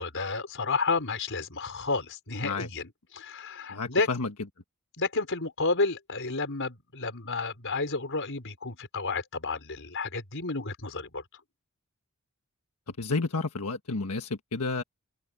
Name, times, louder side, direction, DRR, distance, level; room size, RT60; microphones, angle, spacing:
voice 1, 0.0-4.1 5.0-11.2, left 3 dB, 60° left, 5.2 m, -31 dB
voice 2, 3.7-4.3 12.9-14.8, left 3 dB, 90° left, 1.5 m, -31 dB
head